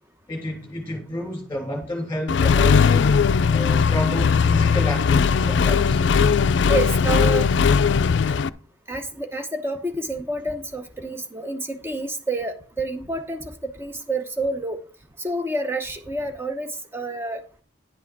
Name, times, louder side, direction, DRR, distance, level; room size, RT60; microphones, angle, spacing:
voice 1, 0.3-3.1 3.5-6.0, left 1 dB, 15° left, 2.9 m, -30 dB
Accelerating revving vroom, 2.3-8.5, left 5 dB, 65° left, 0.4 m, -18 dB
voice 2, 6.7-7.5 8.9-14.8 15.2-17.4, right 2 dB, 10° right, 0.9 m, -28 dB
10.5 x 6.1 x 4.6 m
head